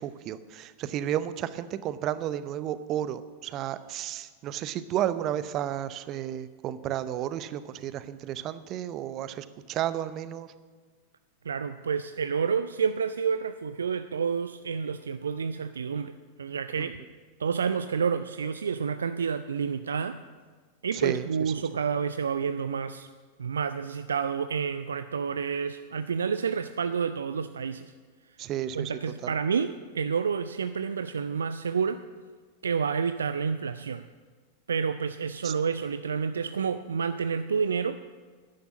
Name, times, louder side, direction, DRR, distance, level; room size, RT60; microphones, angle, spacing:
voice 1, 0.0-10.5 16.8-16.9 21.0-21.3 28.4-28.9 29.2-29.3 35.4-35.5, right 11 dB, 35° right, 14 dB, 0.7 m, -32 dB
voice 2, 11.5-16.1 16.4-17.0 17.4-20.2 20.8-23.1 23.4-27.9 28.7-32.0 32.6-34.1 34.7-38.0, right 6 dB, 70° right, 12 dB, 0.4 m, -29 dB
10.5 x 10.5 x 7.2 m, 1.5 s
figure-of-eight pair, 90°, 0 cm